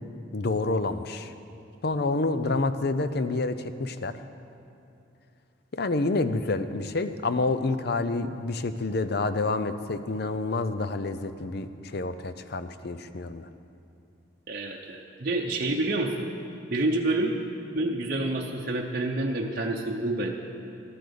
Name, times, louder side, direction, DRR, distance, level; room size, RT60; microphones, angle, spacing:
voice 1, 0.3-1.3 1.8-4.1 5.7-13.5, left 3 dB, 50° left, 11 dB, 0.6 m, -28 dB
voice 2, 14.5-16.3 16.7-17.4 17.7-20.3, right 2 dB, 45° right, -1 dB, 0.8 m, -28 dB
14.0 x 10.0 x 6.9 m, 2.7 s
head